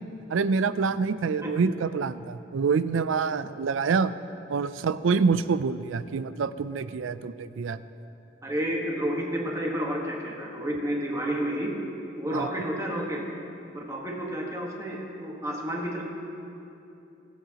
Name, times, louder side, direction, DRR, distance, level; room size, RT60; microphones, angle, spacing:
voice 1, 0.3-4.1 4.5-7.8 12.3-12.5, right 5 dB, 85° right, 14 dB, 0.4 m, -26 dB
voice 2, 8.4-11.8 12.2-13.3 13.7-16.0, equal, 15° right, -2 dB, 1.4 m, -30 dB
22.0 x 8.2 x 2.9 m, 2.8 s
head